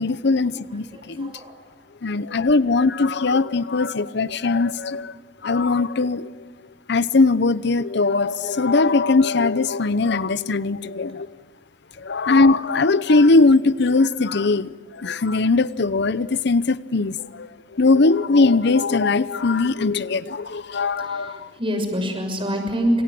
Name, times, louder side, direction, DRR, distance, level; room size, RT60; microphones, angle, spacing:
voice 1, 0.0-1.3 2.0-5.1 5.4-6.3 6.9-11.3 12.0-21.5, left 3 dB, 65° left, 0.8 m, -20 dB
voice 2, 0.7-1.6 20.9-23.0, equal, 30° right, 6.4 m, -26 dB
27.5 x 27.5 x 7.7 m
head